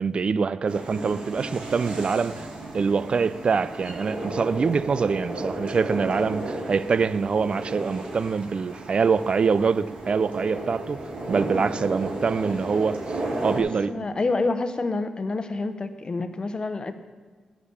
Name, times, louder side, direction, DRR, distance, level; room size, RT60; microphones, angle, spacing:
voice 1, 0.0-2.5 2.7-11.0 11.3-13.0 13.4-14.1, right 5 dB, 50° right, 0.4 m, -24 dB
sound 1, 0.7-13.6, right 2 dB, 70° right, 3.6 m, -34 dB
voice 2, 13.5-16.9, left 3 dB, 40° left, 0.9 m, -28 dB
11.0 x 5.1 x 8.2 m
cardioid pair, 55°, 2 cm